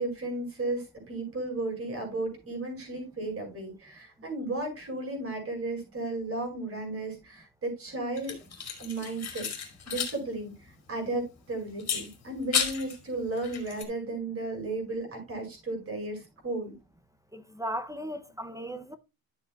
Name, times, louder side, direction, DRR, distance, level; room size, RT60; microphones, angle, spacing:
voice 1, 0.0-9.5 9.9-16.7, right 2 dB, 35° right, 5.3 m, -34 dB
sound 1, 8.2-10.2 10.5-10.6 11.8-13.0 13.4-13.8, left 7 dB, 35° left, 2.7 m, -33 dB
voice 2, 17.3-19.0, right 1 dB, 10° right, 0.5 m, -36 dB
12.0 x 7.8 x 2.3 m
cardioid pair, 155°, 42 cm